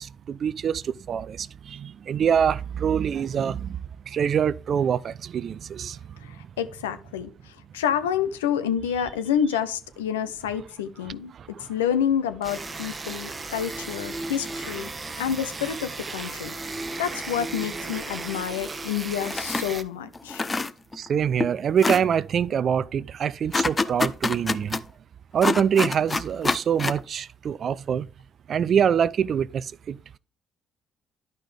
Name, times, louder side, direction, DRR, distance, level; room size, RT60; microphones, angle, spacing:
voice 1, 0.0-3.8 4.1-6.0 11.4-11.7 20.9-24.8 25.3-28.1 28.5-30.0, right 8 dB, 55° right, 0.4 m, -25 dB
voice 2, 6.2-11.3 11.6-14.9 15.2-20.5, left 9 dB, 85° left, 0.6 m, -28 dB
sound 1, 12.4-19.8, right 3 dB, 30° right, 0.9 m, -35 dB
sound 2, 19.2-19.7 20.1-21.1 21.4-21.5 21.8-22.0 23.5-24.8 25.4-27.0, left 3 dB, 25° left, 0.6 m, -26 dB
11.5 x 5.4 x 3.3 m
hypercardioid pair, 50°, 0 cm